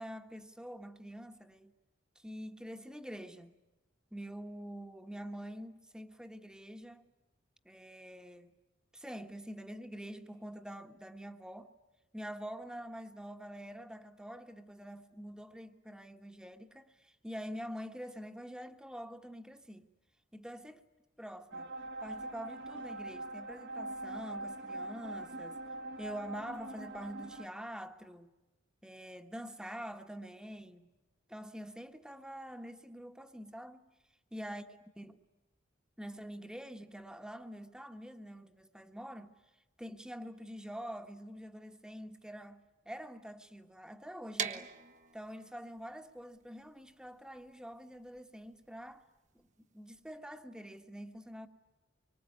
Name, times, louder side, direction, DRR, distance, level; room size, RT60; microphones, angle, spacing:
voice 1, 0.0-1.7 2.1-3.5 4.1-7.1 7.6-8.5 8.9-11.7 12.1-19.9 20.3-20.8 21.2-21.7 22.0-25.6 26.0-28.3 28.8-30.9 31.3-33.9 34.3-34.6 35.0-35.2 36.0-39.3 39.8-44.7 45.1-49.0 49.3-49.5 49.7-51.5, equal, 5° right, 1.6 m, -46 dB
sound 1, 21.5-27.5, right 2 dB, 60° right, 2.0 m, -43 dB
sound 2, 44.4-50.2, right 6 dB, 40° right, 1.5 m, -43 dB
25.5 x 24.5 x 9.6 m
head